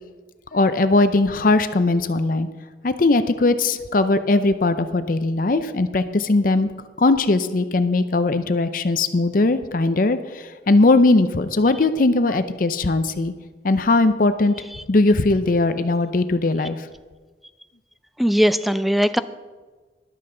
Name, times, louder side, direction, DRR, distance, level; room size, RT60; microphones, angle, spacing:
voice 1, 0.5-2.5 2.8-6.7 7.0-13.3 13.6-14.5 14.9-16.9, left 2 dB, 45° left, 11 dB, 0.6 m, -19 dB
voice 2, 18.2-19.2, equal, ahead, 13 dB, 0.3 m, -19 dB
13.0 x 12.0 x 3.8 m, 1.3 s
head